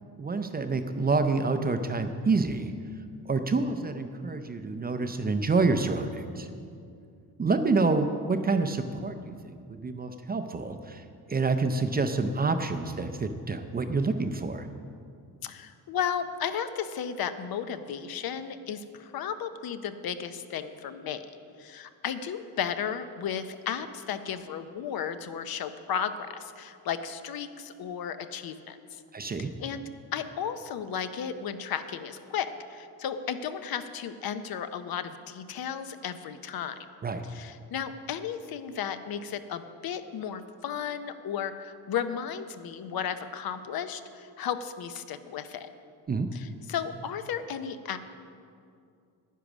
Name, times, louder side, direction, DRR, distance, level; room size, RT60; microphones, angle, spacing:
voice 1, 0.2-2.7 3.3-6.5 7.4-14.7 29.1-29.5 37.0-37.2 46.1-46.3, right 3 dB, 25° right, 8 dB, 0.5 m, -28 dB
voice 2, 15.4-21.2 21.6-29.0 29.4-29.8 30.1-36.8 37.3-45.7 46.3-48.0, left 8 dB, 65° left, 10 dB, 0.7 m, -34 dB
10.0 x 9.5 x 6.1 m, 2.4 s
cardioid pair, 150°, 39 cm